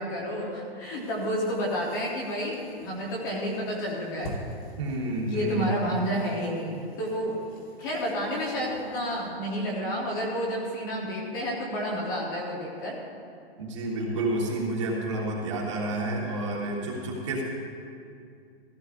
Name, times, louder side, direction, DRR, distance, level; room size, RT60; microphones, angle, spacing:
voice 1, 0.0-4.3 5.3-7.4 7.8-13.0, equal, 20° left, -4 dB, 1.1 m, -30 dB
sound 1, 0.8-9.3, equal, 35° left, 1.6 m, -47 dB
voice 2, 4.8-5.8 13.6-17.4, right 2 dB, 30° right, -3 dB, 1.6 m, -30 dB
15.0 x 15.0 x 2.6 m, 2.4 s
hypercardioid pair, 180°, 31 cm